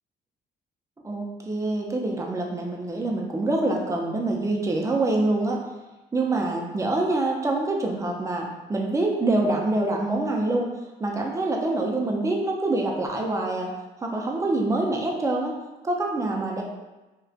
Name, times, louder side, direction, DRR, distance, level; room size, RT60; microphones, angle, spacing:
voice 1, 1.0-5.6 6.1-10.7 11.0-13.7 14.0-15.5 15.8-16.6, right 2 dB, 15° right, 0 dB, 0.4 m, -25 dB
2.5 x 2.2 x 2.4 m, 1.1 s
cardioid pair, 90°, 20 cm